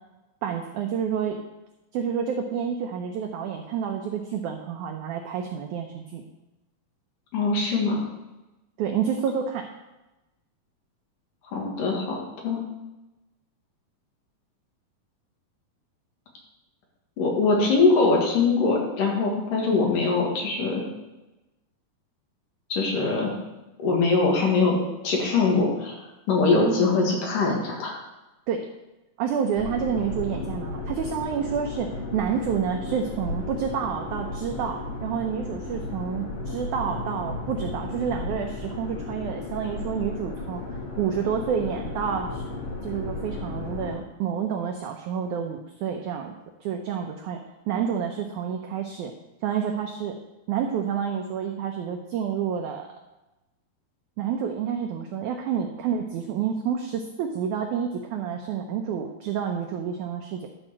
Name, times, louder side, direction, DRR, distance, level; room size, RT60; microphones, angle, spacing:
voice 1, 0.4-1.4 1.9-6.2 8.8-9.7 26.5-27.0 28.5-28.7 29.2-40.6 41.0-42.4 42.8-46.3 46.6-47.4 47.7-49.1 49.4-50.1 50.5-52.9 54.2-60.5, right 7 dB, 85° right, 4 dB, 1.7 m, -29 dB
voice 2, 7.3-8.0 11.5-12.2 12.4-12.6 17.2-20.8 22.7-23.3 23.8-24.7 25.0-25.9 26.3-27.9, left 4 dB, 65° left, -1 dB, 3.2 m, -22 dB
sound 1, 29.5-43.9, left 2 dB, 45° left, 2.2 m, -34 dB
11.5 x 4.4 x 6.2 m, 1.0 s
omnidirectional pair, 4.3 m